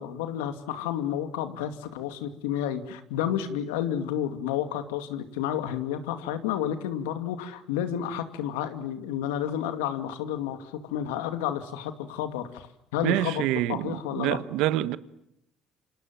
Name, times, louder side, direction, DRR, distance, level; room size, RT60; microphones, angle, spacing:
voice 1, 0.0-12.7 12.9-13.4 13.7-14.4, left 10 dB, 90° left, 2.4 m, -31 dB
voice 2, 13.0-15.0, right 14 dB, 75° right, 1.2 m, -26 dB
29.5 x 27.0 x 7.6 m
supercardioid pair, 65°, 0 cm